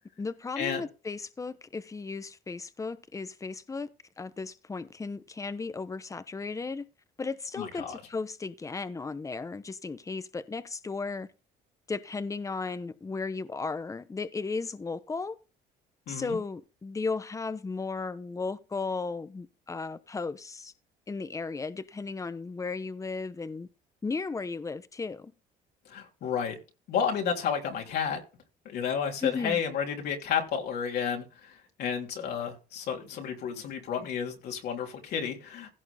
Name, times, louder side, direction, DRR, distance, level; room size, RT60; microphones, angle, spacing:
voice 1, 0.2-3.9 4.2-6.9 7.2-11.3 11.9-15.4 16.1-20.7 21.1-23.7 24.0-25.3 29.2-29.6, left 4 dB, 20° left, 1.0 m, -35 dB
voice 2, 7.6-8.0 16.1-16.4 25.9-26.6 26.9-28.2 28.6-35.7, left 7 dB, 70° left, 3.2 m, -31 dB
16.5 x 6.2 x 3.5 m
cardioid pair, 110°, 17 cm